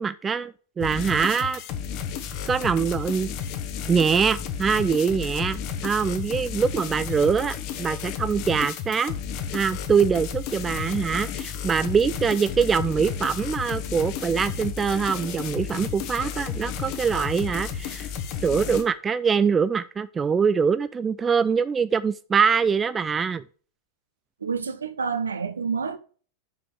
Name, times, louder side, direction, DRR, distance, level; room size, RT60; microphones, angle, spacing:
voice 1, 0.0-1.6 2.5-3.3 3.9-9.1 9.5-18.1 18.4-23.4, right 6 dB, 20° right, 0.4 m, -23 dB
sound 1, 0.8-18.8, left 8 dB, 45° left, 1.1 m, -32 dB
voice 2, 24.4-26.0, right 5 dB, 70° right, 0.8 m, -28 dB
9.3 x 6.9 x 3.3 m
figure-of-eight pair, 90°, 0 cm